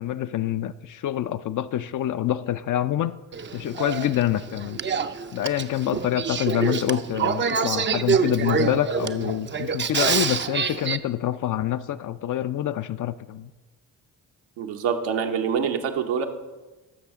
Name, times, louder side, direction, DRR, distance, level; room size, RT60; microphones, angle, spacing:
voice 1, 0.0-3.2 3.5-4.8 5.3-13.5, left 12 dB, 45° left, 13 dB, 0.4 m, -26 dB
Male speech man speaking / Female speech woman speaking / Conversation, 3.3-11.0, right 6 dB, 25° right, 0.5 m, -26 dB
voice 2, 14.6-16.3, right 7 dB, 75° right, 4 dB, 0.9 m, -25 dB
13.0 x 6.1 x 3.6 m, 1.2 s
hypercardioid pair, 45°, 45 cm